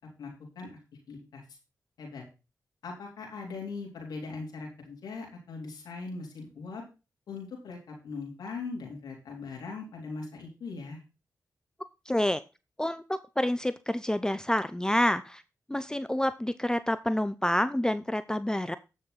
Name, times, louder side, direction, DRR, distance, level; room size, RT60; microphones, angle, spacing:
voice 1, 0.2-0.8 1.1-1.4 2.0-2.2 2.8-6.8 7.3-11.0, left 4 dB, 90° left, -1 dB, 3.7 m, -40 dB
voice 2, 12.1-12.4 12.8-15.4 15.7-18.8, left 1 dB, 10° left, 13 dB, 0.7 m, -28 dB
13.5 x 6.4 x 4.1 m, 0.30 s
cardioid pair, 45°, 7 cm